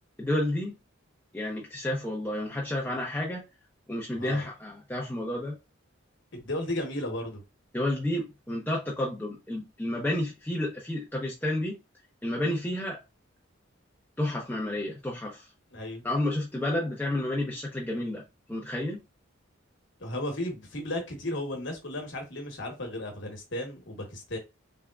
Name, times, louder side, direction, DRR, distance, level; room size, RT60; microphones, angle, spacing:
voice 1, 0.2-0.7 1.3-3.4 3.9-5.5 7.7-11.7 12.2-13.0 14.2-15.4 16.0-18.2 18.5-19.0, left 1 dB, 10° left, 0.6 m, -30 dB
voice 2, 4.1-4.5 6.3-7.4 15.7-16.0 20.0-24.4, left 1 dB, 60° left, 1.2 m, -34 dB
3.5 x 3.5 x 2.4 m
head